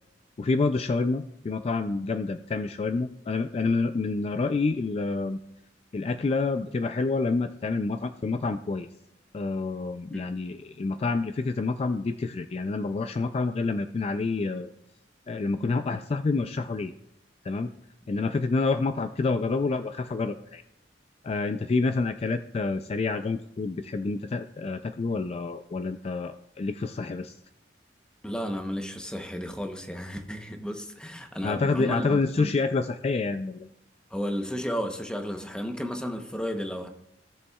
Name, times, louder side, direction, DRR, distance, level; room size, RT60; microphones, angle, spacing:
voice 1, 0.4-5.4 5.9-8.9 9.3-14.7 15.3-16.9 17.4-17.7 18.1-20.6 21.2-27.4 31.4-33.7, left 3 dB, 35° left, 0.3 m, -28 dB
voice 2, 28.2-32.5 34.1-36.9, equal, 5° left, 0.8 m, -33 dB
16.5 x 7.0 x 2.3 m
head